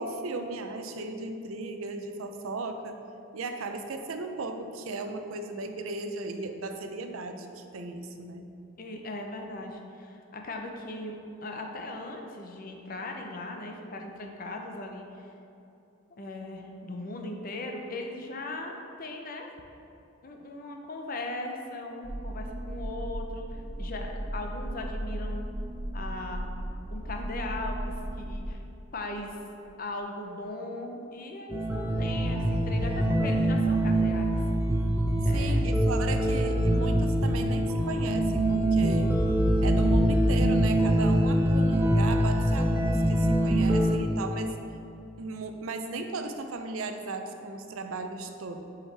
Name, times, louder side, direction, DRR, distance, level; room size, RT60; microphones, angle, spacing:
voice 1, 0.0-3.0 3.3-8.5 35.2-39.1 39.6-44.6 45.2-48.6, right 3 dB, 90° right, 6 dB, 0.5 m, -36 dB
voice 2, 8.8-15.3 16.2-19.5 20.2-25.5 25.9-26.5 26.9-28.6 28.9-29.3 29.8-34.4 35.2-35.7, left 2 dB, 45° left, 3 dB, 0.6 m, -38 dB
sound 1, 22.0-28.5, right 1 dB, 45° right, 1.2 m, -36 dB
sound 2, 31.5-44.0, right 1 dB, 10° right, 0.4 m, -24 dB
7.2 x 4.9 x 3.3 m, 2.8 s
head